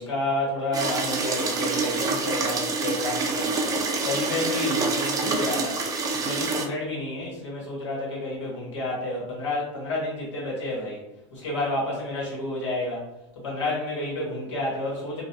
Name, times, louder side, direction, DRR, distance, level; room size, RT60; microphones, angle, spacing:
voice 1, 0.0-5.8 6.2-11.0 11.3-13.1 13.3-15.2, left 2 dB, 85° left, -5 dB, 1.1 m, -30 dB
sound 1, 0.7-6.6, right 3 dB, 25° right, 0.4 m, -26 dB
2.2 x 2.2 x 2.6 m, 0.90 s
hypercardioid pair, 105°, 15 cm